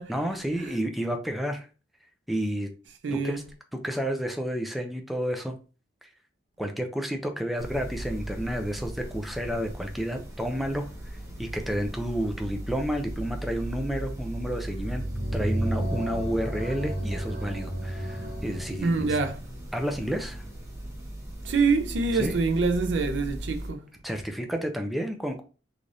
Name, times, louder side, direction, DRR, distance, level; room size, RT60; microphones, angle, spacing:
voice 1, 0.1-1.7 2.3-2.7 3.1-3.4 3.8-5.5 6.0-6.1 6.6-15.0 15.3-19.2 19.7-20.4 22.1-22.3 24.0-25.4, equal, ahead, 0.4 m, -31 dB
voice 2, 3.0-3.4 18.8-19.4 21.4-23.9, right 4 dB, 70° right, 0.5 m, -25 dB
sound 1, 7.6-23.7, right 1 dB, 15° right, 0.8 m, -37 dB
sound 2, 14.8-19.4, right 1 dB, 55° right, 0.9 m, -33 dB
3.2 x 2.4 x 2.6 m
head